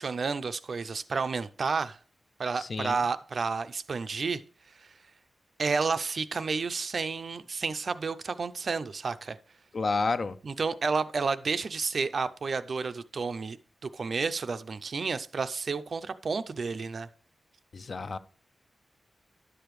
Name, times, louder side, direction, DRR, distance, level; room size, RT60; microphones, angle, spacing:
voice 1, 0.0-2.0 2.4-4.4 5.6-9.4 10.4-13.6 13.9-17.1, right 4 dB, 50° right, 0.4 m, -31 dB
voice 2, 2.6-3.0 9.7-10.4 17.7-18.2, left 3 dB, 45° left, 0.4 m, -30 dB
11.0 x 6.8 x 3.1 m
wide cardioid pair, 160°, 0 cm